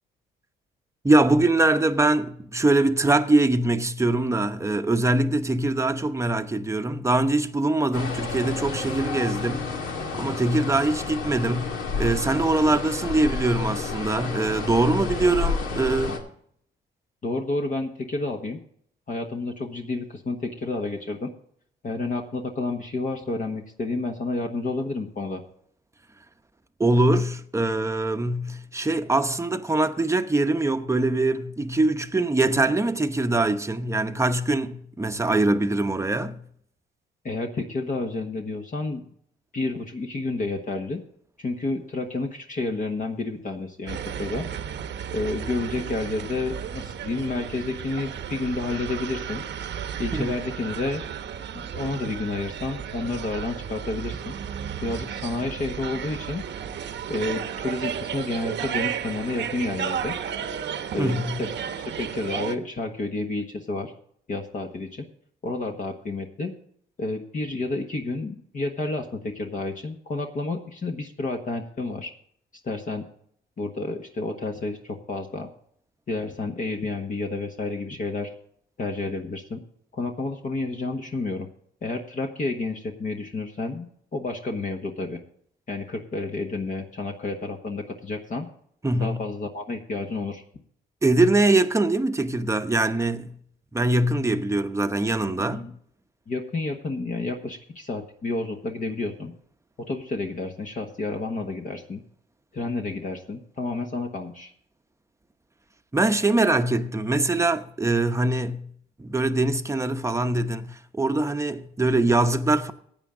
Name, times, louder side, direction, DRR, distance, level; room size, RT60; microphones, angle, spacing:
voice 1, 1.0-9.7 10.1-16.2 26.8-36.4 50.1-50.3 61.0-61.4 88.8-89.2 91.0-93.4 93.7-95.7 105.9-108.7 109.0-112.7, right 2 dB, 15° right, 0.9 m, -23 dB
sound 1, 7.9-16.2, left 4 dB, 75° left, 2.4 m, -30 dB
voice 2, 17.2-18.6 19.1-21.3 21.8-25.4 37.2-39.0 39.5-41.0 41.4-44.5 45.1-49.4 50.0-51.0 51.5-54.3 54.8-56.4 57.1-60.2 60.9-63.9 64.3-65.1 65.4-66.5 67.0-72.1 72.6-73.0 73.6-75.5 76.1-78.3 78.8-79.6 79.9-81.5 81.8-85.2 85.7-88.5 89.0-90.4 95.4-95.7 96.3-99.3 99.8-102.0 102.5-104.5, left 2 dB, 40° left, 1.4 m, -30 dB
sound 2, 43.9-62.6, right 8 dB, 65° right, 1.0 m, -33 dB
15.5 x 9.0 x 3.8 m
cardioid pair, 90°, 20 cm